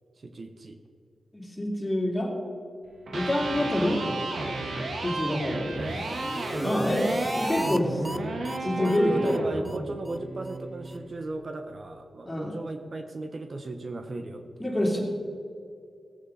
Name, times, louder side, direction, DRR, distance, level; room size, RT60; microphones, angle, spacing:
voice 1, 0.2-0.8 3.5-3.7 6.6-6.8 8.7-14.9, right 2 dB, 55° right, 7 dB, 0.9 m, -36 dB
voice 2, 1.3-2.3 3.1-4.0 5.0-5.8 6.6-7.1 7.3-8.0 8.6-9.4 12.2-12.5 14.6-15.0, left 1 dB, 20° left, -2 dB, 3.2 m, -26 dB
Electric guitar, 3.0-11.1, right 2 dB, 70° right, 1.6 m, -33 dB
sound 1, 5.8-7.8 8.0-8.2 8.4-8.6 8.8-9.0 9.2-9.4 9.6-9.8 10.1-10.2 10.5-10.6 10.9-11.0, equal, 5° right, 0.6 m, -34 dB
17.0 x 8.2 x 4.1 m, 2.4 s
cardioid pair, 55°, 0 cm